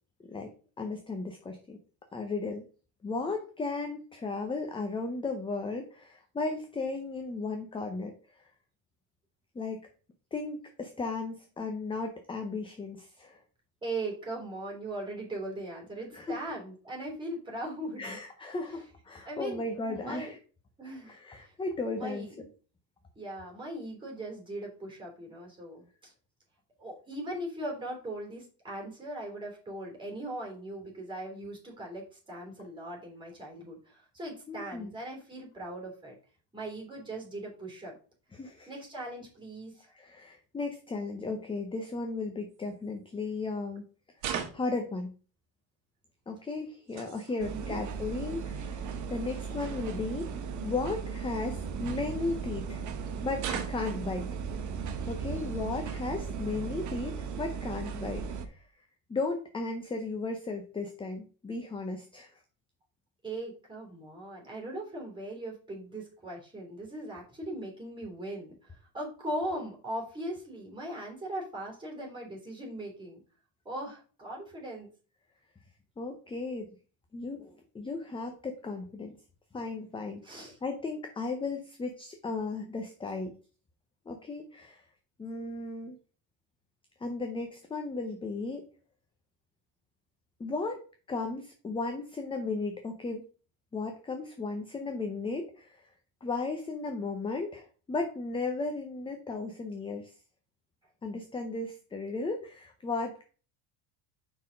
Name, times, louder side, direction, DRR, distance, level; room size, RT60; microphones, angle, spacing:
voice 1, 0.8-1.8 2.1-2.6 3.0-8.4 9.5-9.8 10.3-13.4 16.1-16.4 18.0-20.4 21.1-22.5 34.5-34.9 38.3-38.7 39.9-43.8 44.3-45.1 46.3-50.3 50.6-52.8 53.2-54.3 55.1-58.6 59.1-62.3 76.0-76.7 77.1-79.1 79.5-83.4 84.1-84.8 85.2-86.0 87.0-88.7 90.4-90.8 91.1-93.2 93.7-95.8 96.2-100.1 101.0-103.2, left 3 dB, 10° left, 5 dB, 0.6 m, -35 dB
voice 2, 13.8-18.2 18.7-18.8 19.2-20.3 20.8-21.5 22.0-22.4 23.2-26.1 26.8-36.1 36.5-37.9 38.7-39.9 47.3-47.9 63.2-73.2 73.6-74.9 80.2-80.6, right 1 dB, 10° right, -1 dB, 3.0 m, -39 dB
sound 1, 42.5-42.7 44.2-44.8 46.6-47.4 48.5-48.6 48.8-49.0 50.2-50.3 51.3-52.3 53.4-54.0, right 8 dB, 80° right, 1.9 m, -38 dB
sound 2, 47.4-58.5, right 6 dB, 40° right, 1.0 m, -37 dB
5.6 x 4.5 x 5.0 m, 0.38 s
cardioid pair, 150°, 46 cm